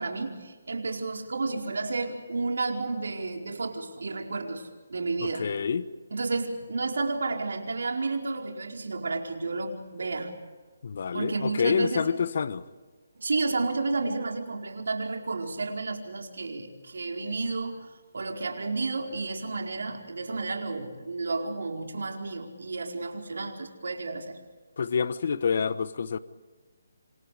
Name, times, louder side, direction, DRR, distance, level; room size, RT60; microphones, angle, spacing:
voice 1, 0.0-5.5 6.1-10.3 11.1-12.1 13.2-17.9 18.1-24.4, right 3 dB, 75° right, 4.7 m, -31 dB
voice 2, 5.2-5.9 10.8-12.6 24.8-26.2, left 6 dB, 55° left, 1.1 m, -27 dB
27.0 x 27.0 x 5.0 m
hypercardioid pair, 155°, 0 cm